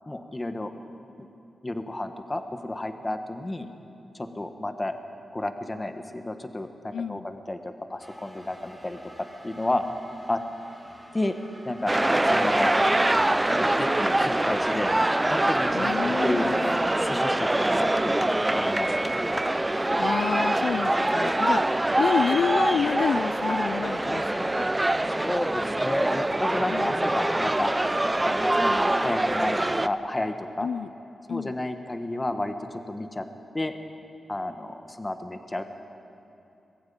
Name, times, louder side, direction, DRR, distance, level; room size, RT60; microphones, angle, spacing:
voice 1, 0.1-0.7 1.2-1.3 1.6-3.7 4.1-5.0 5.3-9.8 10.3-10.4 11.1-11.4 11.6-11.9 12.3-12.7 13.0-14.9 15.3-16.5 17.0-18.9 25.1-27.7 28.3-30.7 31.3-33.2 33.5-33.7 34.3-35.6, left 1 dB, 20° left, 7 dB, 1.3 m, -31 dB
voice 2, 6.9-7.3 15.7-16.8 20.0-24.7 26.7-27.0 30.6-30.9 31.3-31.6, left 7 dB, 85° left, 16 dB, 0.4 m, -29 dB
sound 1, 8.0-25.3, equal, ahead, 2.6 m, -50 dB
sound 2, 11.9-29.9, right 1 dB, 15° right, 0.5 m, -24 dB
20.5 x 15.0 x 8.7 m, 2.7 s
wide cardioid pair, 90°, 0 cm